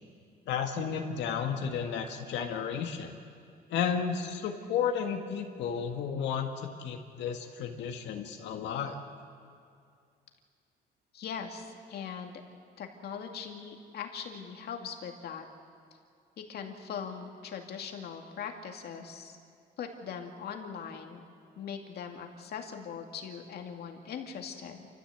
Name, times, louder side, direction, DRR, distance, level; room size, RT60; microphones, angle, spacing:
voice 1, 0.5-3.2 3.7-9.0, left 7 dB, 90° left, 3 dB, 1.8 m, -33 dB
voice 2, 11.1-12.3 12.8-15.5 16.5-19.4 19.8-21.2 21.6-24.9, left 7 dB, 65° left, 3 dB, 2.4 m, -40 dB
29.0 x 14.5 x 8.0 m, 2.3 s
cardioid pair, 130°, 18 cm